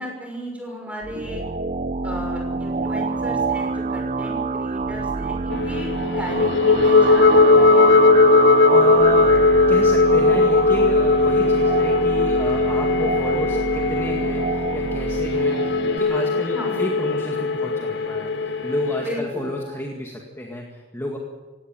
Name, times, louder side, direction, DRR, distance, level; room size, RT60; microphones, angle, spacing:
voice 1, 0.0-1.5 2.0-8.2 16.5-16.8 19.0-19.5, equal, 5° right, 1 dB, 6.2 m, -34 dB
sound 1, 1.0-16.0, right 4 dB, 40° right, 0.8 m, -26 dB
sound 2, 5.5-19.2, left 3 dB, 60° left, 0.8 m, -18 dB
Organ, 6.7-9.0 9.7-9.8 10.1-14.4 14.8-14.9 15.4-19.8, left 2 dB, 60° right, 6.5 m, -36 dB
voice 2, 8.4-21.2, left 1 dB, 15° left, 0 dB, 2.0 m, -31 dB
18.0 x 17.5 x 9.2 m, 1.3 s
head